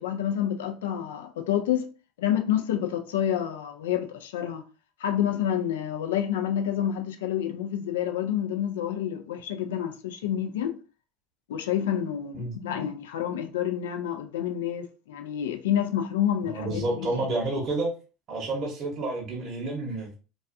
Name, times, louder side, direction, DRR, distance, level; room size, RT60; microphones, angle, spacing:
voice 1, 0.0-1.9 2.2-4.6 5.0-10.7 11.5-17.1, left 10 dB, 80° left, 0.3 m, -28 dB
voice 2, 16.4-17.9 18.3-20.1, right 2 dB, 45° right, 0.9 m, -30 dB
2.3 x 2.3 x 2.5 m
hypercardioid pair, 80°, 0 cm